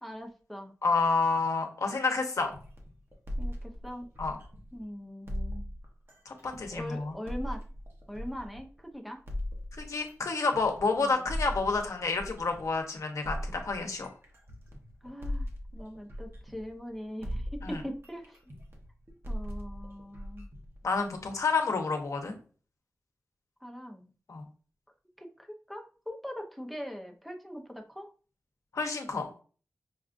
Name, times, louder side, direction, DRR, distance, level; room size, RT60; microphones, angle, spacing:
voice 1, 0.0-0.7 3.4-4.1 4.7-5.7 6.7-7.6 8.1-9.2 11.0-11.2 15.0-18.4 19.3-20.5 23.6-24.1 25.2-28.1, equal, ahead, 2 dB, 0.6 m, -41 dB
voice 2, 0.8-2.5 4.2-4.4 6.3-7.1 9.8-14.1 17.6-17.8 20.8-22.4 24.3-24.5 28.7-29.3, left 4 dB, 70° left, 4 dB, 0.8 m, -29 dB
sound 1, 2.4-4.8 5.3-8.8 9.3-12.8 13.2-16.9 17.2-21.3, equal, 45° right, 0.9 m, -39 dB
5.4 x 2.4 x 2.5 m, 0.39 s
wide cardioid pair, 95°, 5 cm